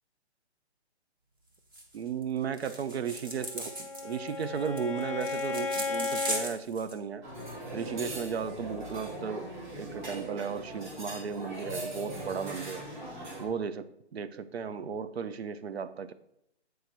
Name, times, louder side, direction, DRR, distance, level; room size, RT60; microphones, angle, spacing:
sound 1, 1.7-2.0 2.2-2.3 2.5-6.9, right 1 dB, 20° right, 0.7 m, -38 dB
voice 1, 1.9-7.2 7.7-12.9 13.4-16.1, right 6 dB, 65° right, 13 dB, 0.7 m, -35 dB
Bowed string instrument, 3.3-6.5, left 4 dB, 30° left, 0.5 m, -34 dB
sound 2, 7.2-13.5, right 1 dB, 45° right, 2.6 m, -40 dB
8.1 x 4.7 x 4.4 m, 0.80 s
hypercardioid pair, 170°, 34 cm